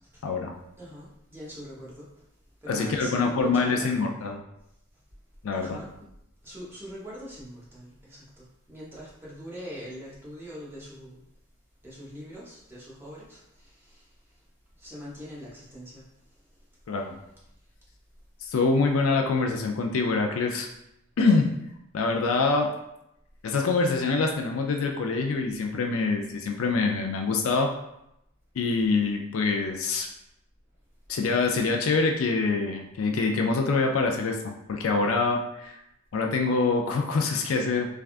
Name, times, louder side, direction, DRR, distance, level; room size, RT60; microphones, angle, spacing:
voice 1, 0.8-2.1 2.6-4.1 5.5-5.9 6.4-11.2 11.8-14.0 14.8-16.0, equal, 10° right, -7 dB, 0.9 m, -42 dB
voice 2, 2.7-4.4 5.4-5.8 16.9-17.2 18.4-20.7 21.2-21.5 21.9-22.7 23.4-27.7 28.6-30.1 31.1-35.8 36.1-37.9, left 4 dB, 70° left, 2 dB, 0.4 m, -25 dB
3.3 x 2.4 x 2.4 m, 0.81 s
head